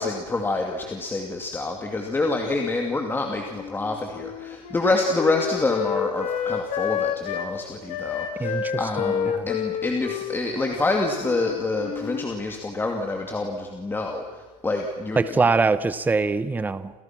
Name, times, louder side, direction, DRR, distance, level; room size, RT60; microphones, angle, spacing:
voice 1, 0.0-15.2, left 2 dB, 10° left, 2 dB, 2.5 m, -27 dB
Wind instrument woodwind instrument, 3.5-7.5 7.9-12.3, left 8 dB, 40° left, 2.7 m, -29 dB
voice 2, 8.4-9.5 15.2-16.9, right 4 dB, 10° right, 14 dB, 0.8 m, -23 dB
29.5 x 29.0 x 6.1 m, 1.2 s
supercardioid pair, 145°, 19 cm